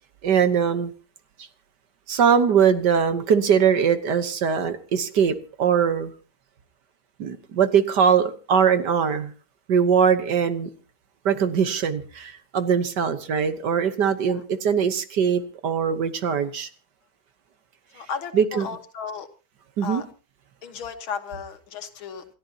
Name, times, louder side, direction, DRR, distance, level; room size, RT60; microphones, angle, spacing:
voice 1, 0.2-0.9 2.1-6.1 7.2-9.3 9.7-10.7 11.3-16.7 18.3-18.7 19.8-20.0, right 7 dB, 60° right, 10 dB, 1.6 m, -21 dB
voice 2, 17.9-19.3 19.8-20.1 20.6-22.3, left 6 dB, 75° left, 8 dB, 2.2 m, -34 dB
28.0 x 13.0 x 2.9 m, 0.35 s
omnidirectional pair, 2.3 m